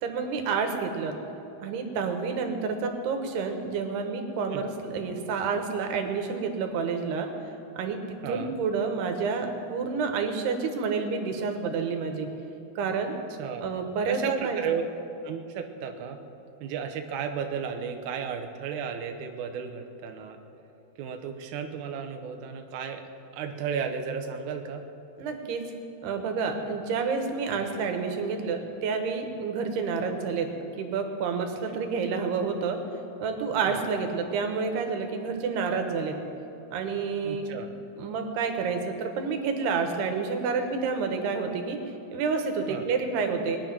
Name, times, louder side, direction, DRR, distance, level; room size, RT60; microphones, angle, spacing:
voice 1, 0.0-1.1 1.6-7.3 7.8-8.0 8.3-12.3 12.8-13.2 13.6-14.6 25.2-25.6 26.0-30.5 30.8-32.8 33.2-36.2 36.7-37.5 38.0-41.8 42.1-43.6, right 5 dB, 85° right, 5 dB, 3.3 m, -29 dB
voice 2, 8.2-8.5 13.4-13.7 14.1-14.8 15.2-16.2 16.6-20.4 21.0-23.0 23.3-24.8 31.7-31.8 33.7-33.8 37.2-37.7 42.7-42.9, right 7 dB, 70° right, 5 dB, 2.0 m, -34 dB
21.0 x 10.0 x 6.0 m, 3.0 s
omnidirectional pair, 4.5 m